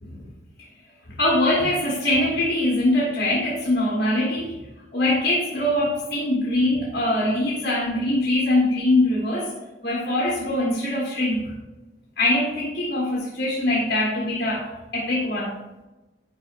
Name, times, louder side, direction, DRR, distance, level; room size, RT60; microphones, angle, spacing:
voice 1, 1.2-4.5 4.9-9.5 9.8-11.5 12.2-15.5, left 1 dB, 55° left, -5 dB, 1.2 m, -23 dB
9.6 x 4.3 x 2.5 m, 1.1 s
head